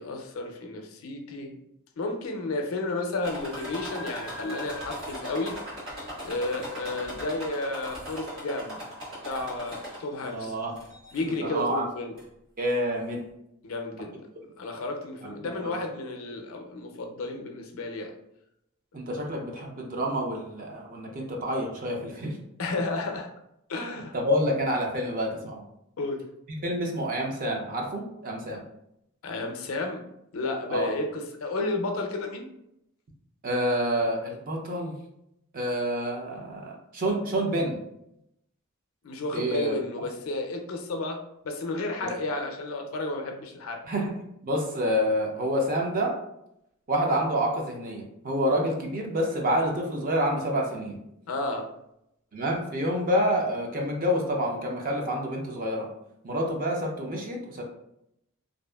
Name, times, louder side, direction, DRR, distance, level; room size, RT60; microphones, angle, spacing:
voice 1, 0.0-1.5 2.0-5.6 6.2-8.8 9.2-10.5 11.1-12.1 13.6-14.1 14.6-18.1 22.6-23.3 23.7-24.1 26.0-26.2 29.2-30.0 30.3-32.5 39.0-41.2 41.4-43.8 51.3-51.7, left 2 dB, 70° left, 3 dB, 0.4 m, -32 dB
sound 1, 3.2-10.3 10.8-11.4 12.2-12.3 12.7-12.8, equal, 75° right, 1.2 m, -39 dB
voice 2, 10.3-10.7 11.4-11.8 12.6-13.2 14.0-14.1 15.2-15.3 15.6-15.7 18.9-22.4 24.1-25.6 26.6-28.6 30.7-30.9 33.4-35.0 35.5-37.8 39.3-39.7 43.9-44.2 44.4-46.2 46.9-51.0 52.3-55.9 56.2-57.6, equal, 40° right, 1 dB, 0.5 m, -28 dB
2.6 x 2.4 x 2.2 m, 0.81 s
head